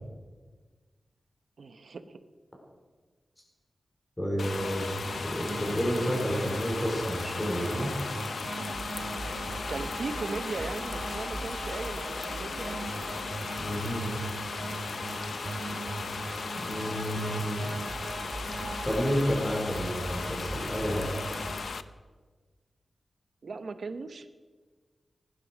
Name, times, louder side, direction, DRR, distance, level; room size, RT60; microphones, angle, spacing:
voice 1, 1.6-2.2 9.7-12.8 23.4-24.3, right 4 dB, 60° right, 10 dB, 1.0 m, -38 dB
voice 2, 4.2-5.0 5.2-7.9 13.6-14.1 16.6-17.7 18.8-21.1, equal, 15° left, -1 dB, 4.7 m, -30 dB
sound 1, 4.4-21.8, left 4 dB, 65° left, 0.6 m, -37 dB
sound 2, 4.5-21.5, right 2 dB, 40° right, 2.9 m, -39 dB
16.5 x 11.5 x 6.3 m, 1.4 s
wide cardioid pair, 110°, 0 cm